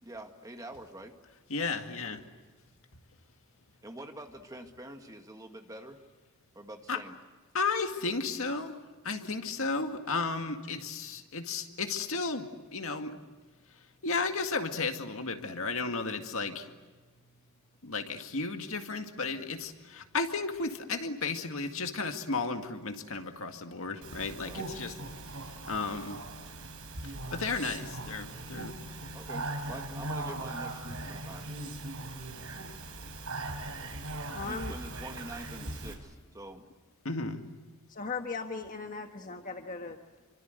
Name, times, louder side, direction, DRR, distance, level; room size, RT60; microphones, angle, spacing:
voice 1, 0.0-1.2 3.8-6.0 6.5-7.2 24.4-24.7 25.9-26.1 29.1-31.5 34.4-36.7, right 1 dB, 15° right, 5 dB, 2.0 m, -46 dB
voice 2, 1.5-2.2 6.9-7.0 7.5-8.8 9.0-13.1 14.0-16.7 17.8-24.9 25.3-25.4 25.7-26.2 27.0-28.7 37.0-37.4, left 4 dB, 65° left, 5 dB, 2.1 m, -34 dB
Speech, 24.0-35.9, right 2 dB, 75° right, 4.8 m, -40 dB
voice 3, 34.3-34.7 37.9-40.0, left 4 dB, 40° left, 5 dB, 1.3 m, -38 dB
28.0 x 25.0 x 8.0 m, 1.3 s
head